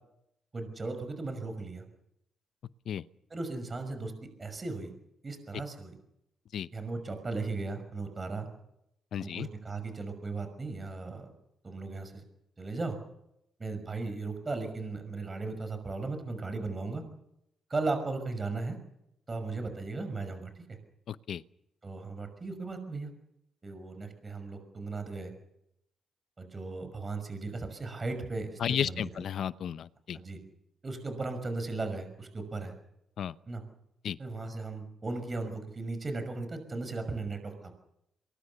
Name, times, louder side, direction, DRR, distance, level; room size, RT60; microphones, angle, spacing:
voice 1, 0.5-1.8 3.3-4.9 5.2-6.0 6.7-8.5 9.2-11.3 11.6-12.2 12.6-13.0 13.6-17.0 17.7-18.8 19.3-20.8 21.8-23.1 23.6-25.3 26.4-29.2 30.1-30.4 30.8-32.7 33.5-33.6 34.2-37.7, right 3 dB, 30° right, 7 dB, 5.9 m, -36 dB
voice 2, 9.1-9.5 21.1-21.4 28.6-30.2 33.2-33.3 34.0-34.2, left 9 dB, 65° left, 16 dB, 0.7 m, -33 dB
23.5 x 21.0 x 7.0 m, 0.80 s
cardioid pair, 90°, 0 cm